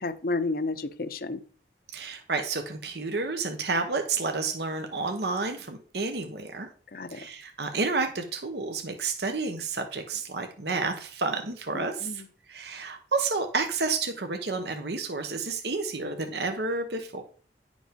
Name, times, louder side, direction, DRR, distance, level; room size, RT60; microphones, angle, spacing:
voice 1, 0.0-1.4 6.9-7.3 11.7-12.3, left 3 dB, 55° left, 12 dB, 0.7 m, -31 dB
voice 2, 1.9-6.7 7.1-12.2 12.5-17.2, right 3 dB, 65° right, 5 dB, 1.0 m, -30 dB
10.5 x 5.2 x 5.2 m, 0.43 s
head